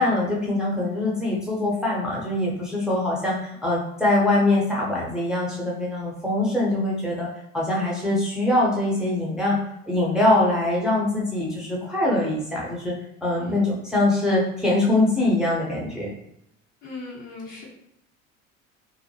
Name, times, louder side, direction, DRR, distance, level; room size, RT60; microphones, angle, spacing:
voice 1, 0.0-7.3 7.5-9.6 9.9-12.9 13.2-16.1, left 2 dB, ahead, -4 dB, 0.5 m, -23 dB
voice 2, 13.2-13.7 16.8-17.6, left 3 dB, 70° left, -6 dB, 1.1 m, -39 dB
2.3 x 2.1 x 3.0 m, 0.79 s
figure-of-eight pair, 65°, 40 cm